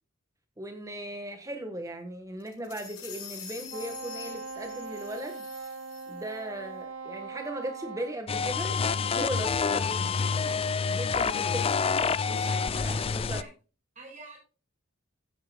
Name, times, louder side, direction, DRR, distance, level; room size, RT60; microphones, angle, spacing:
voice 1, 0.6-5.5 6.1-10.1 10.9-11.7 12.0-12.2 12.8-13.0 13.3-13.4, right 1 dB, 15° right, 6 dB, 1.4 m, -38 dB
sound 1, 2.4-6.4, left 8 dB, 90° left, 5.5 m, -45 dB
Wind instrument woodwind instrument, 3.7-8.2, right 4 dB, 90° right, 1.3 m, -40 dB
sound 2, 8.3-13.4, left 5 dB, 25° left, 0.4 m, -27 dB
voice 2, 9.6-9.9 11.0-11.6 12.3-13.0 13.3-13.5 14.0-14.4, right 1 dB, 35° right, -1 dB, 5.5 m, -46 dB
15.5 x 8.8 x 2.3 m, 0.33 s
head